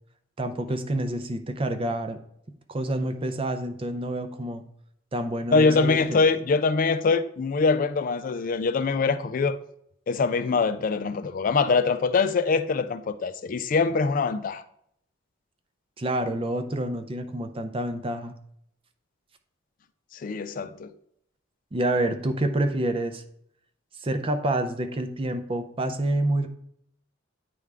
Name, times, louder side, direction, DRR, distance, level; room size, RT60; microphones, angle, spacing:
voice 1, 0.4-2.2 2.7-4.6 5.1-6.0 16.0-18.3 21.7-23.2 24.0-26.5, right 1 dB, 30° right, 0.5 m, -28 dB
voice 2, 5.5-9.6 10.1-14.6 20.1-20.9, left 4 dB, 45° left, 0.4 m, -23 dB
9.3 x 3.6 x 3.4 m
head